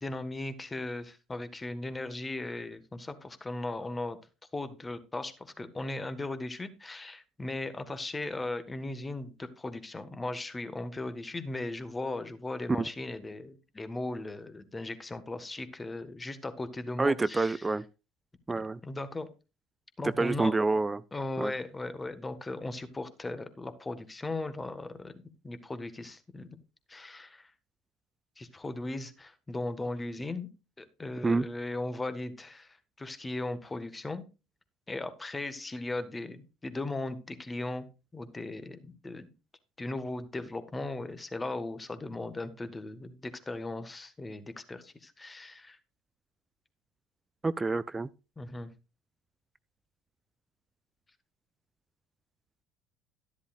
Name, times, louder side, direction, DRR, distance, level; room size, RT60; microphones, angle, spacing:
voice 1, 0.0-4.2 4.5-17.7 18.8-19.3 20.0-20.6 21.1-26.6 26.9-27.5 28.4-30.5 30.8-34.2 34.9-39.3 39.8-45.8 48.4-48.7, left 2 dB, 15° left, 1.5 m, -37 dB
voice 2, 17.0-17.8 18.5-18.8 20.2-21.0 21.4-21.5 31.2-31.5 47.4-48.1, right 3 dB, 15° right, 0.4 m, -27 dB
13.0 x 11.0 x 2.5 m
figure-of-eight pair, 60°, 0 cm